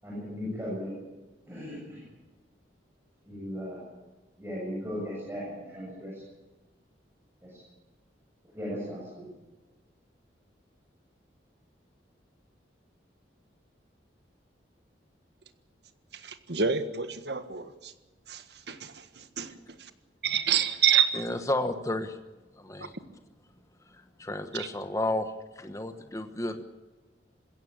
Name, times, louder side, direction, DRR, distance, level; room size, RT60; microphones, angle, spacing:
voice 1, 0.0-0.9 1.5-2.0 3.2-3.8 4.4-6.2 7.4-7.6 8.5-9.2, equal, 15° right, -6 dB, 7.8 m, -37 dB
voice 2, 16.2-17.9 18.3-18.9 19.4-19.5 20.2-21.2, right 8 dB, 60° right, 10 dB, 1.6 m, -27 dB
voice 3, 21.1-22.2 22.6-22.9 23.9-26.6, left 1 dB, 15° left, 8 dB, 1.2 m, -32 dB
21.5 x 16.5 x 8.8 m, 1.2 s
head